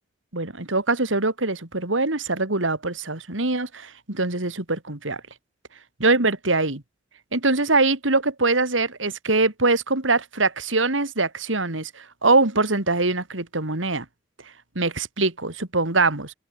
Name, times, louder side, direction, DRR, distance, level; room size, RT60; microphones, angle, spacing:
voice 1, 0.3-5.2 6.0-6.8 7.3-14.0 14.7-16.3, right 3 dB, 85° right, 3.3 m, -23 dB
head